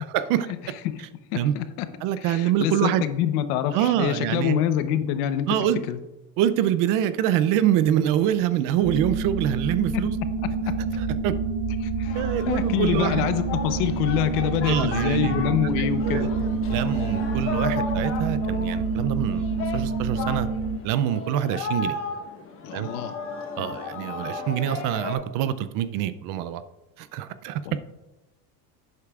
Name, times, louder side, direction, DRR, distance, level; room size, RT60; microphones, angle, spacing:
voice 1, 0.1-0.5 1.4-1.5 2.0-3.1 3.7-4.6 5.5-5.8 6.4-10.1 11.2-11.3 12.1-13.3 14.7-15.5 16.0-16.3 16.7-19.5 19.7-20.5 20.8-22.0 22.7-22.9 23.6-26.6 27.0-27.6, right 11 dB, 45° right, 0.5 m, -25 dB
voice 2, 0.6-1.0 1.3-1.9 2.2-6.0 9.9-10.0 10.7-10.8 11.8-16.3 22.6-23.2 23.6-23.7 27.6-27.8, left 11 dB, 75° left, 0.9 m, -26 dB
sound 1, 8.8-20.8, right 4 dB, 70° right, 1.1 m, -27 dB
Singing, 12.0-25.1, left 4 dB, 30° left, 1.1 m, -35 dB
11.0 x 8.3 x 2.4 m
supercardioid pair, 140°, 45 cm